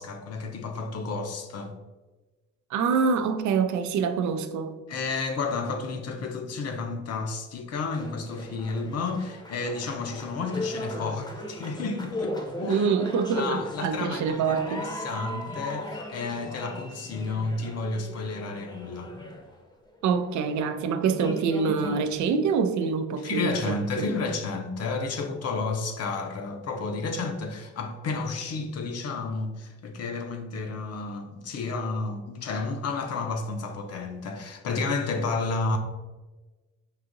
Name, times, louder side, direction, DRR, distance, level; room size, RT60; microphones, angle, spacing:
voice 1, 0.0-1.8 4.9-12.9 13.4-19.1 23.2-35.8, left 3 dB, 55° left, 0.6 m, -31 dB
voice 2, 2.7-4.8 12.7-14.9 20.0-24.1, right 6 dB, 70° right, 0.4 m, -26 dB
sound 1, 7.9-19.9 20.6-20.7 21.0-22.2, left 1 dB, 15° left, 0.7 m, -37 dB
4.8 x 2.8 x 2.5 m
cardioid pair, 95°, 30 cm